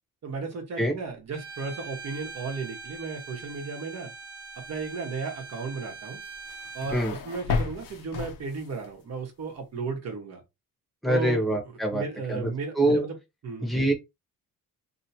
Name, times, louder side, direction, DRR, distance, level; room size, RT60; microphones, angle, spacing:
voice 1, 0.2-4.1 4.7-6.2 6.7-10.4 11.1-13.2 13.4-13.7, right 4 dB, 50° right, 1.4 m, -34 dB
Bowed string instrument, 1.3-7.1, right 4 dB, 85° right, 0.9 m, -42 dB
sound 1, 6.2-8.9, left 5 dB, 70° left, 0.9 m, -33 dB
voice 2, 11.0-12.0 12.3-12.5 12.7-13.0 13.6-13.9, right 1 dB, ahead, 1.3 m, -24 dB
3.0 x 2.8 x 2.9 m
cardioid pair, 125°, 34 cm